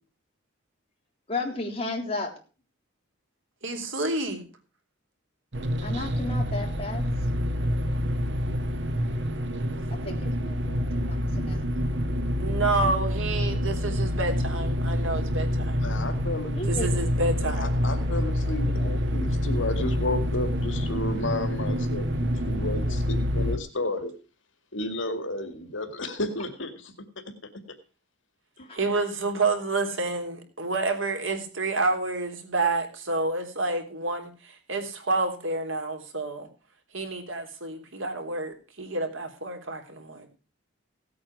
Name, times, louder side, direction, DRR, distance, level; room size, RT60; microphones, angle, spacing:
voice 1, 1.3-2.3 5.8-7.0 9.9-11.6 16.5-16.9 18.6-18.9 28.6-28.8, left 2 dB, 30° left, 0 dB, 3.6 m, -34 dB
voice 2, 3.6-4.4 12.4-15.8 16.7-17.7 28.7-36.5 36.9-40.3, right 3 dB, 85° right, 5 dB, 3.5 m, -29 dB
sound 1, 5.5-23.6, equal, 65° right, 1.5 m, -27 dB
voice 3, 15.8-16.6 17.4-22.1 22.5-24.1 24.7-26.9 28.6-28.7, left 2 dB, 75° left, 8 dB, 2.1 m, -32 dB
17.0 x 8.7 x 4.8 m, 0.35 s
head